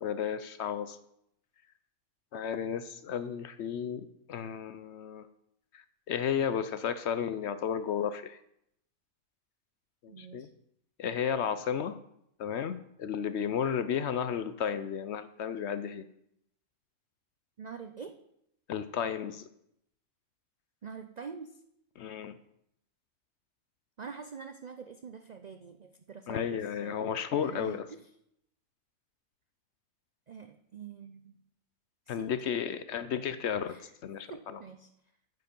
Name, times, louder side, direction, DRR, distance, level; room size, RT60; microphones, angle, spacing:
voice 1, 0.0-1.0 2.3-5.3 5.7-8.4 10.0-10.5 11.0-12.0 12.4-16.0 18.7-19.4 22.0-22.3 26.3-27.8 32.1-33.7 34.0-34.6, left 8 dB, 65° left, 12 dB, 0.8 m, -33 dB
voice 2, 10.1-10.5 17.6-18.1 20.8-21.5 24.0-27.8 30.3-31.4 32.1-32.3 33.7-33.9 34.3-34.9, right 6 dB, 70° right, 8 dB, 0.4 m, -45 dB
9.5 x 7.7 x 5.3 m, 0.75 s
omnidirectional pair, 1.5 m